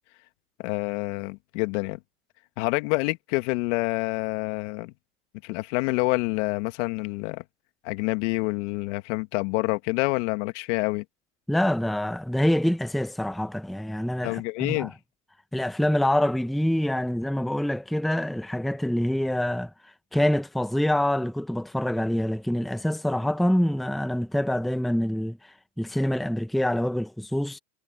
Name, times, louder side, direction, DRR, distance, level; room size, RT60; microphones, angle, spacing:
voice 1, 0.6-2.0 2.6-4.9 5.4-7.4 7.8-11.0 14.2-14.9, left 25 dB, 65° left, 2.0 m, -27 dB
voice 2, 11.5-14.9 15.5-19.7 20.1-25.4 25.8-27.6, left 1 dB, ahead, 1.1 m, -25 dB
supercardioid pair, 110°, 38 cm